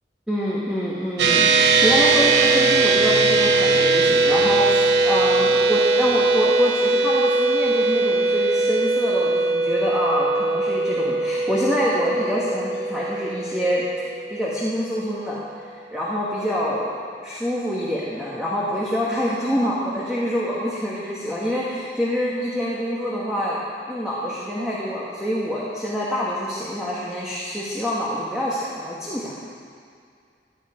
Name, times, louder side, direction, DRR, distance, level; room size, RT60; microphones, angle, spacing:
voice 1, 0.3-13.8 14.3-23.6 23.9-29.4, equal, 5° right, -7 dB, 1.4 m, -26 dB
sound 1, 1.2-14.8, right 3 dB, 75° right, 0.9 m, -20 dB
14.0 x 9.2 x 4.9 m, 2.3 s
head